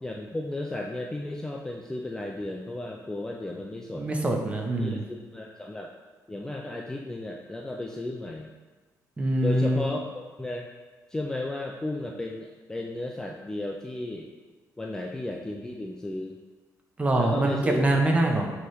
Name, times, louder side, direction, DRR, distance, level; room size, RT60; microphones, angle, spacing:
voice 1, 0.0-4.3 4.8-5.9 6.3-8.5 9.4-10.7 11.1-14.3 14.8-16.4 17.1-17.9, left 2 dB, 10° left, 0 dB, 0.4 m, -34 dB
voice 2, 3.9-5.0 9.2-9.8 17.0-18.5, right 1 dB, 20° right, 1 dB, 0.8 m, -24 dB
6.9 x 3.1 x 4.9 m, 1.3 s
cardioid pair, 155°, 7 cm